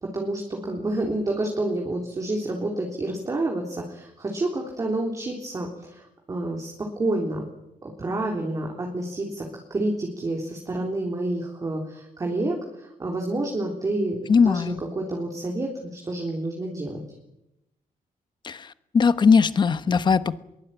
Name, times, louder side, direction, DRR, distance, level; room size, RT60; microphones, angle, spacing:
voice 1, 0.0-7.5 7.8-17.0, right 2 dB, 25° right, 0 dB, 3.7 m, -29 dB
voice 2, 14.3-14.8 18.4-18.7 18.9-20.4, left 5 dB, 30° left, 12 dB, 1.1 m, -19 dB
23.0 x 22.5 x 9.1 m, 0.88 s
wide cardioid pair, 175°, 14 cm